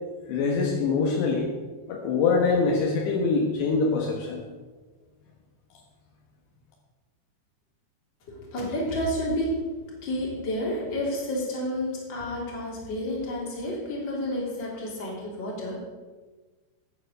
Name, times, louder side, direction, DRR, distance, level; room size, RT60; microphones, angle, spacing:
voice 1, 0.3-1.5 1.9-4.4, left 4 dB, 75° left, 1 dB, 3.3 m, -24 dB
voice 2, 8.3-9.5 10.0-15.9, left 1 dB, 25° left, -4 dB, 3.4 m, -30 dB
11.0 x 9.2 x 6.5 m, 1.3 s
omnidirectional pair, 5.3 m